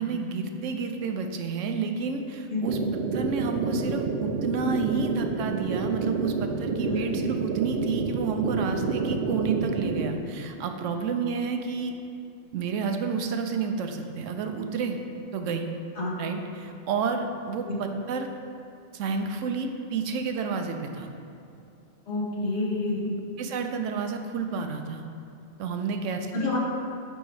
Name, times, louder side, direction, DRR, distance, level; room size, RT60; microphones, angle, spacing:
voice 1, 0.0-2.8 3.1-11.9 12.5-15.0 15.3-15.7 16.2-18.3 18.9-21.1 23.4-25.0 25.6-26.3, right 5 dB, 80° right, 5 dB, 0.9 m, -30 dB
sound 1, 2.7-10.1, right 4 dB, 60° right, 0.6 m, -29 dB
voice 2, 22.1-23.2 26.3-26.6, left 2 dB, 65° left, -4 dB, 1.5 m, -29 dB
8.8 x 3.1 x 4.7 m, 2.6 s
omnidirectional pair, 1.3 m